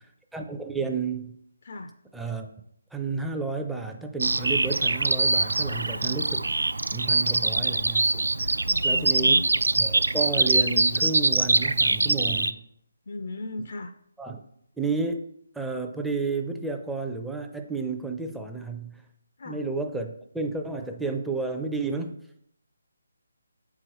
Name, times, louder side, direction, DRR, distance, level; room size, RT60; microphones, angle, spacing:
voice 1, 0.3-1.4 2.1-2.5 2.9-6.5 6.9-8.5 8.8-9.4 9.8-12.6 13.6-13.7 14.2-14.4 14.8-15.3 15.5-19.0 19.4-22.2, right 4 dB, 5° right, 3 dB, 0.4 m, -31 dB
voice 2, 1.6-1.9 5.9-6.2 8.6-9.4 13.1-13.9 19.4-19.6, left 2 dB, 55° left, 7 dB, 0.4 m, -36 dB
Bird vocalization bird call bird song, 4.2-12.5, right 2 dB, 85° right, 0.3 m, -23 dB
7.7 x 4.7 x 3.0 m, 0.73 s
figure-of-eight pair, 160°, 0 cm